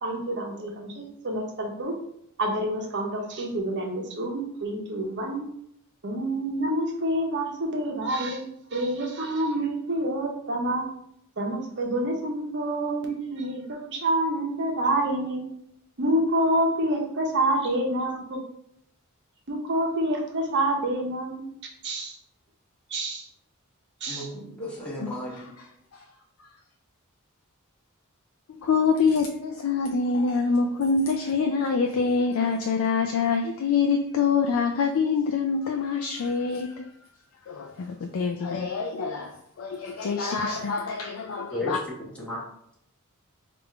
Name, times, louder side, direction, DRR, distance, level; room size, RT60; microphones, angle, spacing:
voice 1, 0.0-1.9 2.4-5.5 6.0-10.9 11.4-15.5 16.0-18.4 19.5-21.5 21.8-22.2 22.9-23.3 24.0-24.3, right 1 dB, 55° right, 0 dB, 0.9 m, -27 dB
voice 2, 24.1-25.5 41.5-42.4, left 1 dB, 5° left, -6 dB, 1.1 m, -34 dB
voice 3, 28.5-36.9 37.5-41.8, left 5 dB, 70° left, 4 dB, 0.4 m, -25 dB
3.5 x 2.5 x 4.4 m, 0.70 s
head